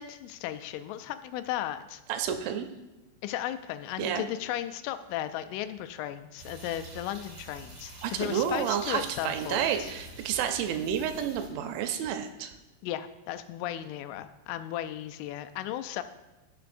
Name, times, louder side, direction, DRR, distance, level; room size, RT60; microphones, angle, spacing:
voice 1, 0.0-2.0 3.2-9.9 12.8-16.0, left 12 dB, 85° left, 10 dB, 3.0 m, -35 dB
voice 2, 2.1-2.7 4.0-4.2 8.0-12.5, right 8 dB, 80° right, 7 dB, 2.9 m, -30 dB
sound 1, 6.4-11.5, right 2 dB, 35° right, 2.7 m, -47 dB
16.5 x 6.9 x 2.6 m, 1.1 s
omnidirectional pair, 5.5 m